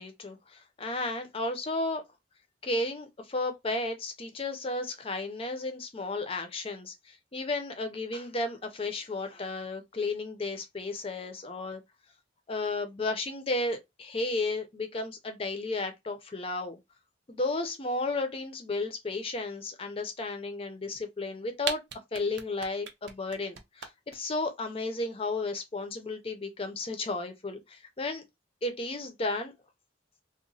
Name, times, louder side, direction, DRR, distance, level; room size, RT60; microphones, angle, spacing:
voice 1, 0.0-2.0 2.6-11.8 12.5-16.8 17.3-21.8 22.1-28.2 28.6-29.5, left 2 dB, 30° left, 0.5 m, -33 dB
sound 1, 21.2-21.3 21.6-24.1, right 7 dB, 65° right, 0.5 m, -36 dB
2.9 x 2.1 x 2.6 m
head